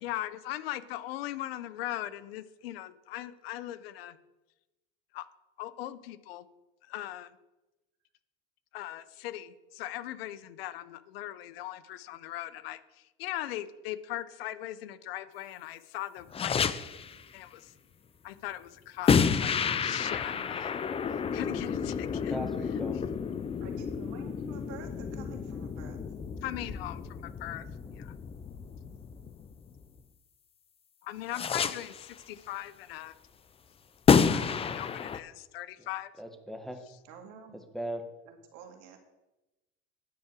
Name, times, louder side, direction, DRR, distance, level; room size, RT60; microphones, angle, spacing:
voice 1, 0.0-4.2 5.1-5.2 5.6-6.5 6.9-7.3 8.7-12.8 13.2-16.6 17.3-17.7 18.2-20.8 21.3-22.4 26.4-27.6 28.0-28.1 31.0-33.1 34.2-36.1, left 14 dB, 85° left, 15 dB, 0.7 m, -39 dB
sound 1, 16.3-17.2 19.1-30.0 31.3-32.1 34.1-35.2, left 6 dB, 20° left, 0.5 m, -30 dB
voice 2, 22.1-23.0 35.8-35.9 36.2-36.8 37.7-38.0, right 1 dB, ahead, 5 dB, 1.2 m, -38 dB
voice 3, 23.6-26.0 37.1-37.6 38.3-39.0, right 7 dB, 65° right, 4 dB, 2.0 m, -49 dB
9.4 x 4.7 x 7.4 m, 1.0 s
supercardioid pair, 105°, 29 cm